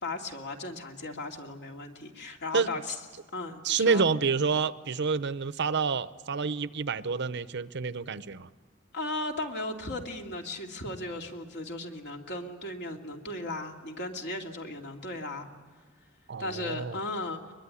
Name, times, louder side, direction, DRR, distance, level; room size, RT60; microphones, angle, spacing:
voice 1, 0.0-3.0 3.3-4.1 8.9-15.5 16.4-17.4, left 2 dB, 55° left, 2.7 m, -36 dB
voice 2, 3.6-8.5 16.3-17.0, right 5 dB, 60° right, 0.7 m, -28 dB
23.5 x 22.0 x 9.9 m
head